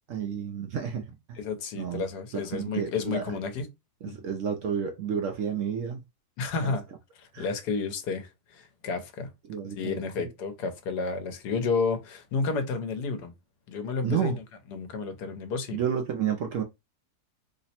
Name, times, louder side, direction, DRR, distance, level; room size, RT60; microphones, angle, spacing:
voice 1, 0.1-1.4 1.7-2.1 2.3-3.2 4.0-6.0 6.6-6.7 7.3-7.5 9.5-10.3 14.0-14.4 15.7-16.6, right 8 dB, 70° right, 0.8 m, -31 dB
voice 2, 1.4-3.6 4.1-4.2 6.4-6.8 7.2-9.3 9.8-13.3 13.7-14.4 14.7-15.8, left 4 dB, 80° left, 1.3 m, -31 dB
3.2 x 2.0 x 4.1 m
omnidirectional pair, 1.7 m